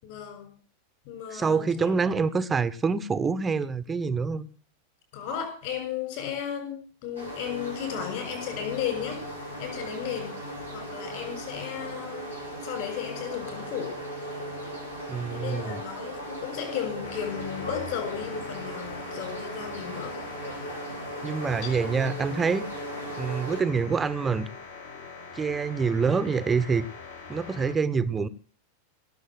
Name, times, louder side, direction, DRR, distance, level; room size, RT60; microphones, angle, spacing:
voice 1, 0.0-0.5 1.1-2.1 5.1-9.2 9.6-10.4 10.7-12.4 12.6-14.0 15.3-20.2 21.6-21.7, left 9 dB, 50° left, 6.7 m, -34 dB
voice 2, 1.3-4.5 15.1-15.8 21.2-22.7 23.2-24.5 25.3-26.9 27.3-28.3, right 5 dB, 15° right, 1.1 m, -26 dB
sound 1, 7.2-23.6, right 1 dB, 90° left, 5.5 m, -37 dB
sound 2, 17.0-27.7, left 4 dB, 65° left, 4.7 m, -43 dB
18.0 x 7.3 x 7.6 m
figure-of-eight pair, 90°, 0 cm